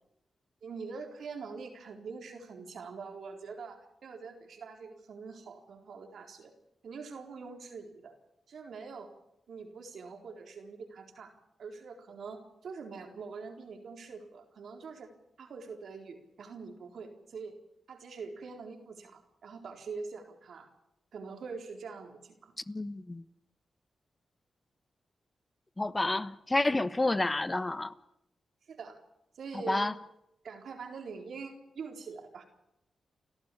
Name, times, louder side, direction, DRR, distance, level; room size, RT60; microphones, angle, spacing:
voice 1, 0.6-6.5 6.8-8.2 8.5-9.1 9.5-15.1 15.4-17.6 17.9-20.7 21.1-22.5 28.7-29.0 29.3-29.9 30.4-32.4, right 5 dB, 75° right, 4.1 m, -44 dB
voice 2, 22.7-23.2 25.8-27.9 29.7-29.9, left 2 dB, 25° left, 1.1 m, -29 dB
30.0 x 13.0 x 8.6 m
cardioid pair, 50°, 0 cm